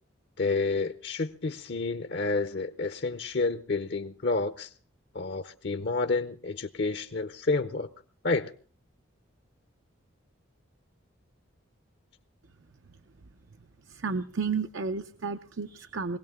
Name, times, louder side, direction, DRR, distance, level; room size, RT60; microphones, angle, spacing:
voice 1, 0.4-4.7 5.1-7.9 8.2-8.5, left 3 dB, 55° left, 10 dB, 0.7 m, -29 dB
voice 2, 13.8-16.2, right 5 dB, 70° right, 8 dB, 0.7 m, -32 dB
22.5 x 17.0 x 3.6 m, 0.42 s
head